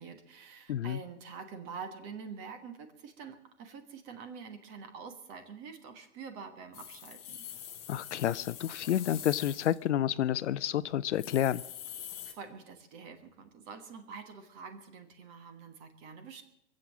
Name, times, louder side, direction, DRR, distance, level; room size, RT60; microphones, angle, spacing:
voice 1, 0.0-7.4 12.2-16.4, right 5 dB, 25° right, 1.3 m, -46 dB
voice 2, 0.7-1.0 7.9-11.6, left 11 dB, 75° left, 0.6 m, -30 dB
sound 1, 6.7-9.9 10.4-10.5 10.8-10.9 11.1-12.3, left 10 dB, 15° left, 1.1 m, -45 dB
23.0 x 7.8 x 7.4 m
hypercardioid pair, 165°, 35 cm